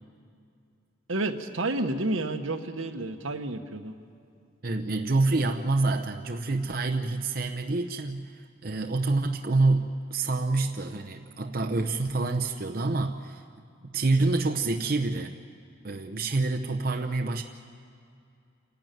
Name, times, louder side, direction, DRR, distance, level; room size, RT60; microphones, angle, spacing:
voice 1, 1.1-3.9, right 2 dB, 80° right, 6 dB, 1.3 m, -30 dB
voice 2, 4.6-13.4 13.8-15.4 15.8-17.4, right 3 dB, 45° right, 4 dB, 0.7 m, -27 dB
28.5 x 12.0 x 9.2 m, 2.5 s
head